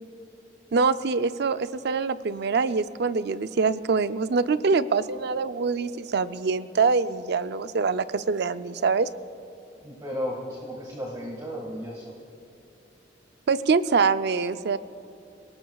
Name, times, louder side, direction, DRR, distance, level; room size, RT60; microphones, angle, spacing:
voice 1, 0.7-9.1 13.5-14.8, right 4 dB, 65° right, 12 dB, 0.5 m, -24 dB
voice 2, 9.8-12.1, equal, 20° right, -2 dB, 1.8 m, -34 dB
27.5 x 18.5 x 2.3 m, 2.7 s
head